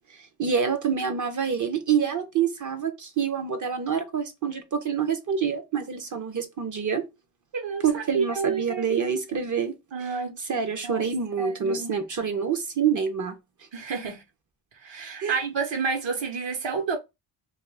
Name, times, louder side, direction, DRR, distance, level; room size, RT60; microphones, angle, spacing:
voice 1, 0.1-7.0 7.8-10.1 10.5-13.3 15.2-15.4, right 7 dB, 40° right, 0.6 m, -27 dB
voice 2, 7.5-8.8 9.9-10.6 10.8-11.1 11.4-11.9 13.7-14.2 14.8-17.0, right 5 dB, 65° right, 1.0 m, -30 dB
2.5 x 2.3 x 3.2 m
cardioid pair, 110°, 48 cm